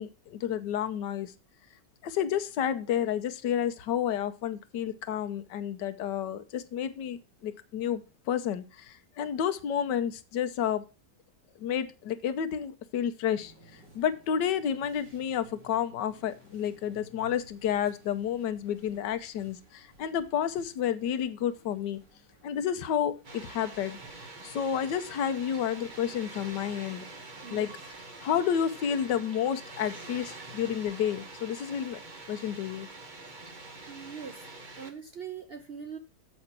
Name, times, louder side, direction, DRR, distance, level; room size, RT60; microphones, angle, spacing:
voice 1, 0.0-1.3 2.0-10.8 11.6-22.0 22.4-27.1 27.5-27.9 28.2-32.0 32.3-32.9, left 9 dB, 85° left, 10 dB, 1.4 m, -31 dB
sound 1, 13.3-26.7, right 1 dB, 85° right, 5.0 m, -58 dB
Water, 23.2-34.9, right 3 dB, 30° right, 1.2 m, -46 dB
voice 2, 27.4-27.7 30.0-30.1 33.9-34.5 34.8-36.0, right 7 dB, 50° right, 7 dB, 0.7 m, -42 dB
7.8 x 5.4 x 5.9 m, 0.31 s
omnidirectional pair, 1.8 m